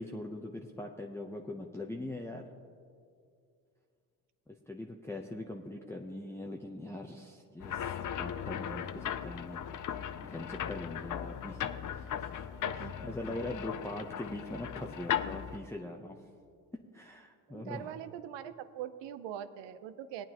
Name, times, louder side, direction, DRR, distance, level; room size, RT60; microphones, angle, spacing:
voice 1, 0.0-2.6 4.5-7.9 8.2-9.6 10.2-12.3 12.7-16.3 16.9-17.9, left 1 dB, 5° left, 1 dB, 0.7 m, -42 dB
sound 1, 7.6-15.6, left 9 dB, 45° left, 0.6 m, -37 dB
voice 2, 12.6-13.6 17.5-20.3, right 10 dB, 75° right, 12 dB, 0.7 m, -43 dB
18.5 x 9.0 x 2.9 m, 2.3 s
supercardioid pair, 60°, 43 cm